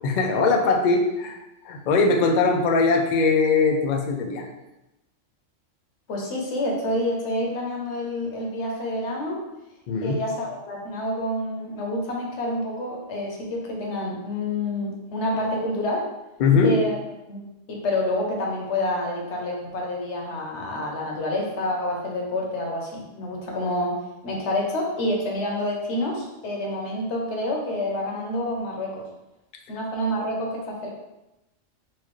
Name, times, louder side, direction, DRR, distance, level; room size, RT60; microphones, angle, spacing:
voice 1, 0.0-1.4 1.7-4.5 9.9-10.2 16.4-16.8, left 4 dB, 80° left, 3 dB, 0.4 m, -21 dB
voice 2, 6.1-9.4 10.0-16.1 16.6-17.0 17.3-29.0 29.7-30.9, left 1 dB, 65° left, -1 dB, 1.1 m, -28 dB
4.3 x 2.3 x 3.0 m, 0.96 s
omnidirectional pair, 1.3 m